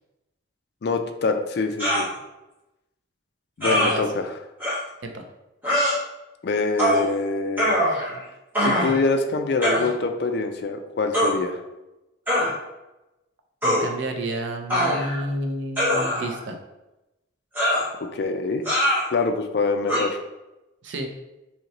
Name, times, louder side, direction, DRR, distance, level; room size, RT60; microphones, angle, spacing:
voice 1, 0.8-2.1 3.6-4.3 6.4-7.9 8.6-11.6 18.1-18.6 19.1-20.2, left 3 dB, 55° left, 6 dB, 0.4 m, -25 dB
sound 1, 1.8-2.1 3.6-3.9 4.6-4.8 5.6-6.0 6.8-7.1 7.6-8.2 8.5-9.0 9.6-9.9 11.1-11.3 12.3-12.5 13.6-13.9 14.7-15.2 15.8-16.4 17.6-17.9 18.7-19.1 19.9-20.0, equal, 10° right, 1.1 m, -22 dB
voice 2, 3.6-4.0 5.0-5.2 13.6-16.6 20.8-21.1, right 1 dB, 65° right, 4 dB, 0.5 m, -30 dB
4.0 x 2.9 x 2.9 m, 0.96 s
head